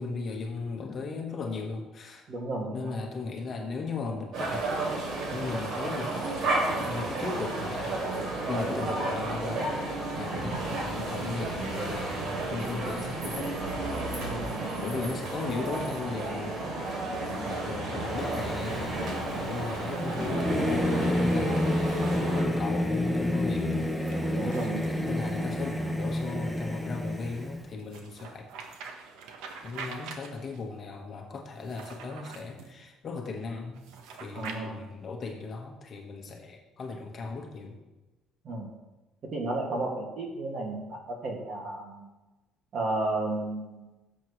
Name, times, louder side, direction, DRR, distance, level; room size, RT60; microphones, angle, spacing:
voice 1, 0.0-2.3 2.7-4.6 5.3-6.5 6.9-8.0 8.5-9.7 10.1-13.6 14.8-16.6 17.3-23.9 24.4-24.7 25.1-28.4 29.6-33.8 34.1-37.8, left 4 dB, 35° left, 1 dB, 1.5 m, -37 dB
voice 2, 2.3-2.9 14.2-14.7 24.3-24.8 34.3-34.8 38.4-38.7 39.2-42.1 42.7-44.0, right 2 dB, 45° right, 0 dB, 2.2 m, -33 dB
sound 1, 4.3-22.4, right 2 dB, 60° right, 3.1 m, -32 dB
Singing / Musical instrument, 18.1-27.7, left 1 dB, ahead, 0.8 m, -29 dB
sound 2, 21.7-22.1 23.7-25.7 27.8-30.7 31.5-32.7 33.7-34.6, right 5 dB, 90° right, 1.3 m, -45 dB
16.0 x 7.5 x 3.3 m, 1.1 s
cardioid pair, 145°, 0 cm